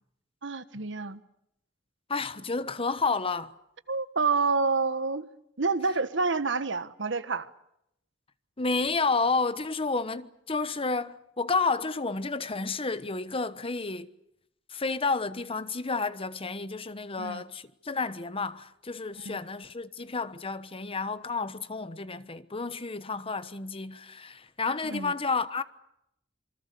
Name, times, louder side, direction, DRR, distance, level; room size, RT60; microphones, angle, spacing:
voice 1, 0.4-1.2 3.9-5.2 5.6-7.5 17.2-17.4 19.2-19.4 24.8-25.1, right 4 dB, 70° right, 1.4 m, -28 dB
voice 2, 2.1-3.5 8.6-14.1 14.7-25.6, left 4 dB, 30° left, 1.1 m, -31 dB
27.5 x 24.5 x 6.9 m
head